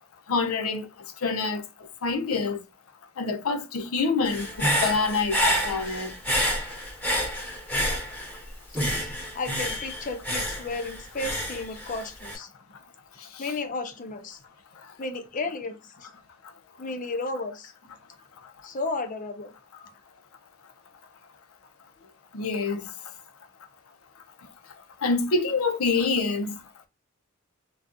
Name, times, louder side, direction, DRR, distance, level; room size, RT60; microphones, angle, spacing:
voice 1, 0.3-0.9 1.2-1.6 2.0-2.6 3.2-6.1 13.3-13.4 22.3-22.9 25.0-26.6, left 4 dB, 85° left, 0.6 m, -26 dB
Human voice / Breathing, 4.2-8.4 8.7-12.4, equal, 10° left, 0.8 m, -28 dB
voice 2, 9.0-12.5 13.4-14.4 15.0-16.1 16.8-17.9 18.6-19.9, left 3 dB, 40° left, 0.5 m, -33 dB
2.5 x 2.3 x 3.7 m
head